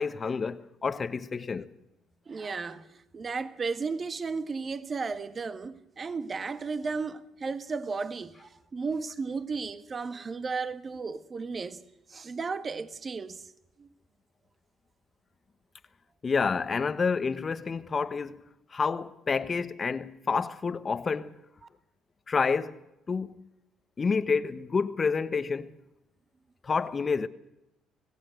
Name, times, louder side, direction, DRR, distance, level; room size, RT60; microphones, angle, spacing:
voice 1, 0.0-1.7 16.2-18.4 18.7-21.4 22.3-22.8 23.1-23.5 24.0-25.7 26.6-27.3, left 5 dB, 35° left, 1.2 m, -29 dB
voice 2, 2.3-11.8 12.1-13.5 13.8-13.9, right 4 dB, 40° right, 1.5 m, -34 dB
26.0 x 17.5 x 6.5 m
hypercardioid pair, 60°, 0 cm